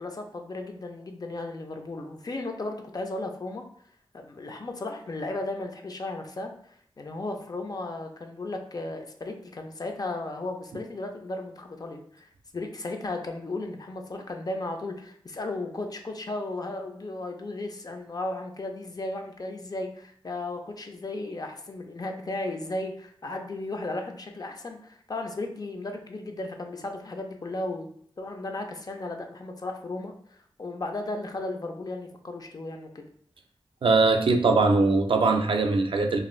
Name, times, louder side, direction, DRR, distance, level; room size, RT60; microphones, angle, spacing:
voice 1, 0.0-3.6 4.1-33.0, left 2 dB, 40° left, 4 dB, 0.4 m, -35 dB
voice 2, 33.8-36.2, right 3 dB, 65° right, 4 dB, 0.4 m, -21 dB
2.5 x 2.4 x 3.0 m, 0.63 s
wide cardioid pair, 80°, 10 cm